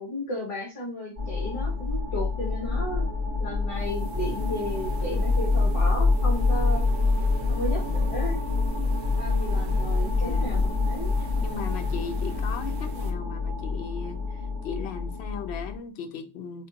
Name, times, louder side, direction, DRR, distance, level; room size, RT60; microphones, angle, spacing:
voice 1, 0.0-3.1 3.4-6.8 7.5-8.4 9.2-11.1, left 1 dB, 30° left, 1.1 m, -34 dB
sound 1, 1.2-15.8, left 3 dB, 35° right, 1.8 m, -26 dB
sound 2, 3.7-13.1, right 5 dB, 65° right, 1.0 m, -46 dB
voice 2, 10.2-10.6 11.2-16.7, left 6 dB, 65° left, 0.8 m, -37 dB
3.6 x 3.4 x 2.7 m
omnidirectional pair, 1.3 m